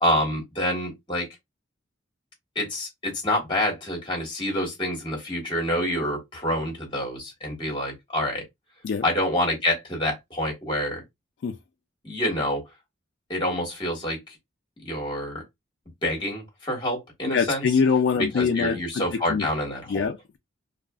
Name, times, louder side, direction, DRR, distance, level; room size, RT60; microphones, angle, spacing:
voice 1, 0.0-1.3 2.5-8.4 9.0-11.0 12.0-12.6 13.3-14.4 14.8-15.4 16.0-17.6 18.2-20.1, left 1 dB, 25° left, 1.2 m, -27 dB
voice 2, 17.3-19.0 19.3-19.5 19.9-20.4, left 6 dB, 65° left, 0.3 m, -24 dB
2.7 x 2.4 x 2.2 m
head